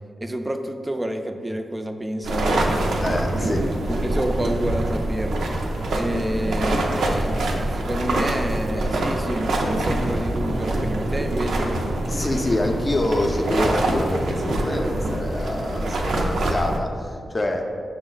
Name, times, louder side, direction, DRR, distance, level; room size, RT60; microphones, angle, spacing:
voice 1, 0.2-2.9 3.2-3.5 3.9-5.5 5.9-12.0, right 1 dB, 20° right, 6 dB, 0.4 m, -29 dB
sound 1, 2.2-16.8, right 1 dB, 85° right, 0.4 m, -25 dB
voice 2, 3.0-3.6 12.1-17.6, left 1 dB, 35° left, 3 dB, 0.5 m, -26 dB
5.8 x 2.0 x 3.9 m, 2.3 s
cardioid pair, 50°, 0 cm